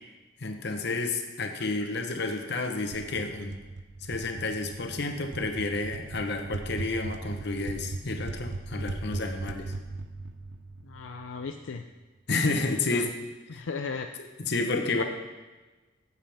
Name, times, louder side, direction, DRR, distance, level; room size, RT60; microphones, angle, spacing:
voice 1, 0.4-3.6 4.0-9.7 12.3-13.1 13.5-13.6 14.4-15.0, left 3 dB, 60° left, 5 dB, 1.0 m, -30 dB
sound 1, 2.9-11.6, right 2 dB, 60° right, 0.6 m, -38 dB
voice 2, 10.8-11.8 12.7-13.1 13.5-14.1 15.0-15.1, left 5 dB, 85° left, 5 dB, 0.5 m, -36 dB
14.0 x 7.4 x 3.5 m, 1.2 s
head